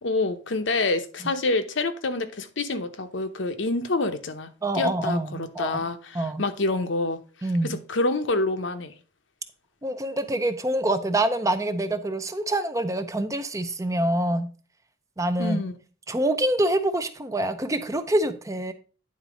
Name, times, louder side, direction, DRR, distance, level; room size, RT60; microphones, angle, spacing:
voice 1, 0.0-4.5 4.7-7.2 7.6-8.9 15.4-15.7, left 2 dB, 70° left, 0.8 m, -27 dB
voice 2, 4.6-5.9 6.1-6.4 7.4-7.8 9.8-14.5 15.2-15.6 16.1-18.7, right 1 dB, 15° right, 0.5 m, -26 dB
9.6 x 4.0 x 5.0 m
head